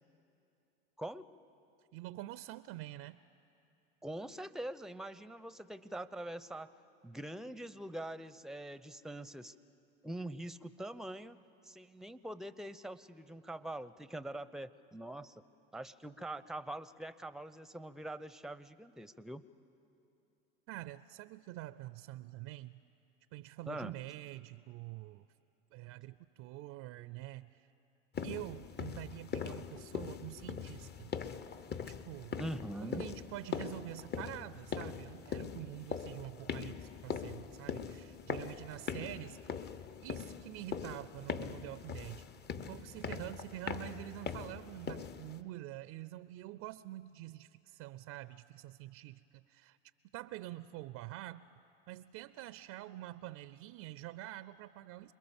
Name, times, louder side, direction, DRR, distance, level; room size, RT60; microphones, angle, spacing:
voice 1, 1.0-1.3 4.0-6.7 7.0-9.5 10.0-11.4 11.6-15.4 15.7-19.4 23.7-23.9 32.4-33.1, right 1 dB, ahead, 15 dB, 0.7 m, -43 dB
voice 2, 1.9-3.2 20.7-22.8 23.3-25.3 25.7-27.7 28.2-31.1 31.8-32.4 32.8-39.4 40.0-42.3 42.6-49.8 50.1-51.5 51.9-55.1, right 16 dB, 60° right, 16 dB, 0.6 m, -46 dB
sound 1, 28.1-45.4, left 7 dB, 35° left, 1.0 m, -42 dB
27.5 x 21.5 x 7.1 m, 2.7 s
hypercardioid pair, 85°, 30 cm